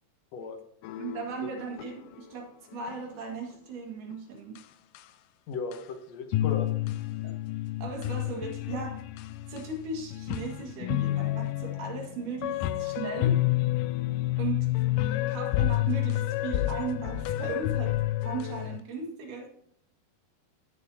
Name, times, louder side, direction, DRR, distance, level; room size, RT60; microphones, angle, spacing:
sound 1, 0.8-1.9 2.2-2.3 2.7-3.0 4.1-4.2 4.6-4.7 4.9-5.0 5.7-5.8 6.3-18.8, left 14 dB, 80° left, 2.1 m, -29 dB
voice 1, 1.0-4.6 7.2-7.3 7.8-9.0 9.5-13.4 14.4-14.7 15.3-18.0 18.3-19.5, right 4 dB, 70° right, 1 dB, 3.5 m, -37 dB
voice 2, 5.5-6.8, left 5 dB, 60° left, 6 dB, 2.0 m, -36 dB
15.0 x 7.0 x 2.8 m, 0.71 s
omnidirectional pair, 4.0 m